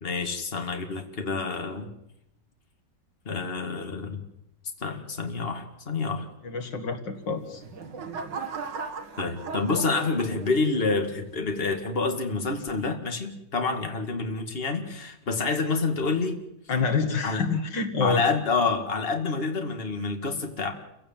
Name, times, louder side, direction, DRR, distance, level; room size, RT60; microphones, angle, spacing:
voice 1, 0.0-1.9 3.3-4.2 4.8-6.3 9.2-16.4 17.2-17.5 18.0-20.7, left 4 dB, 30° left, 4 dB, 2.3 m, -28 dB
voice 2, 6.4-7.6 16.7-18.2, left 5 dB, 80° left, 7 dB, 2.6 m, -27 dB
sound 1, 7.3-10.9 11.4-11.8, right 5 dB, 80° right, 2.3 m, -37 dB
29.0 x 16.5 x 7.5 m, 0.85 s
omnidirectional pair, 1.9 m